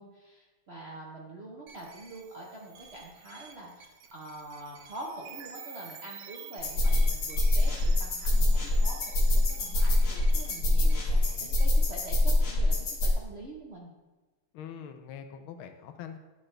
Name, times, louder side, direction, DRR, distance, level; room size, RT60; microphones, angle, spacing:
voice 1, 0.0-13.9, right 2 dB, 55° right, -4 dB, 0.7 m, -45 dB
sound 1, 1.7-11.7, right 7 dB, 70° right, 1.4 m, -49 dB
sound 2, 6.6-13.1, left 1 dB, 60° left, 1.9 m, -24 dB
voice 2, 11.0-11.5 14.5-16.2, left 8 dB, 75° left, 7 dB, 1.4 m, -44 dB
11.0 x 4.2 x 3.2 m, 1.2 s
omnidirectional pair, 2.3 m